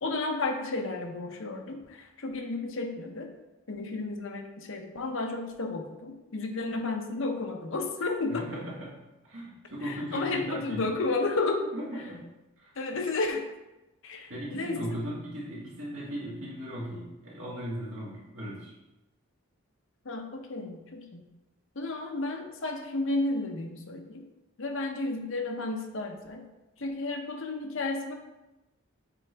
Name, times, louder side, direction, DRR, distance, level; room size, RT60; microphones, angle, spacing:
voice 1, 0.0-3.3 3.7-8.4 9.8-11.6 12.8-13.4 14.0-14.8 20.0-21.2 21.8-24.2 24.6-26.4 26.8-28.1, left 3 dB, 55° left, 3 dB, 0.7 m, -32 dB
voice 2, 8.3-9.0 9.2-10.9 11.7-12.8 14.3-18.7, equal, 60° right, -6 dB, 1.9 m, -37 dB
7.4 x 3.8 x 3.4 m, 1.0 s
head